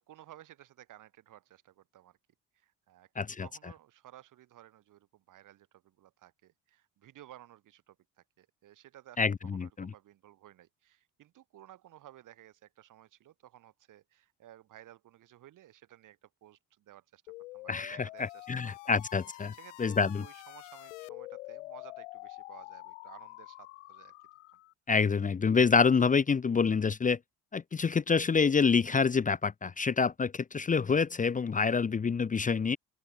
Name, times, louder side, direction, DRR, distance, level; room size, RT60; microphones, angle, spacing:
voice 1, 0.0-2.2 2.5-18.7 19.5-24.1, right 13 dB, 65° right, 4.5 m, -56 dB
voice 2, 3.2-3.5 9.2-9.9 17.7-19.5 19.8-20.2 24.9-27.2 27.5-32.8, left 5 dB, 25° left, 0.7 m, -27 dB
sound 1, 17.3-24.7, left 21 dB, 90° left, 4.6 m, -47 dB
open air
hypercardioid pair, 65°, 34 cm